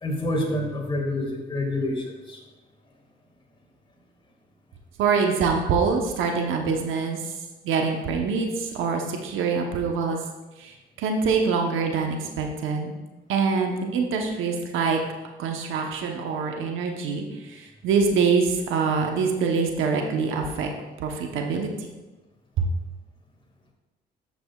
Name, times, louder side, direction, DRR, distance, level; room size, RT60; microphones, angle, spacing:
voice 1, 0.0-2.4, left 1 dB, 25° left, 0 dB, 1.9 m, -27 dB
voice 2, 5.0-7.3 7.6-10.2 10.6-12.9 13.3-15.0 15.4-20.7 21.0-21.9 22.6-22.7, right 5 dB, 85° right, 2 dB, 0.9 m, -25 dB
9.8 x 7.8 x 2.3 m, 1.1 s
cardioid pair, 90°, 20 cm